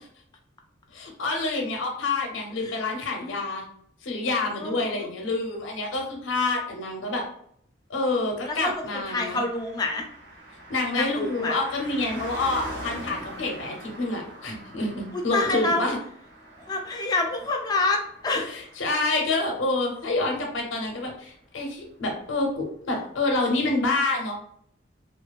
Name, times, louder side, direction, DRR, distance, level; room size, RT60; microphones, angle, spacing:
voice 1, 0.9-3.6 4.0-7.2 7.9-9.4 10.7-16.0 18.3-24.3, left 2 dB, 80° left, 2 dB, 0.6 m, -27 dB
voice 2, 4.6-5.1 8.4-10.1 11.0-11.6 15.1-15.8 16.7-18.5, left 2 dB, 20° left, 2 dB, 0.3 m, -27 dB
Car passing by, 8.9-20.7 21.0-21.1, right 1 dB, 65° right, 0.9 m, -43 dB
2.5 x 2.3 x 2.2 m, 0.66 s
head